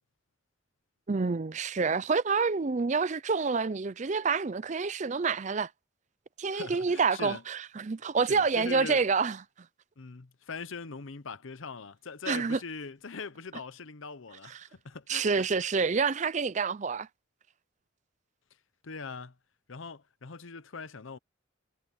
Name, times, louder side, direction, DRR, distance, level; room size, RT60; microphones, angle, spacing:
voice 1, 1.1-5.7 6.4-9.4 12.3-12.6 15.1-17.1, right 4 dB, 35° right, 0.5 m, -28 dB
voice 2, 6.5-7.4 8.2-9.0 10.0-15.5 18.8-19.4 19.7-21.2, left 4 dB, 75° left, 0.9 m, -41 dB
head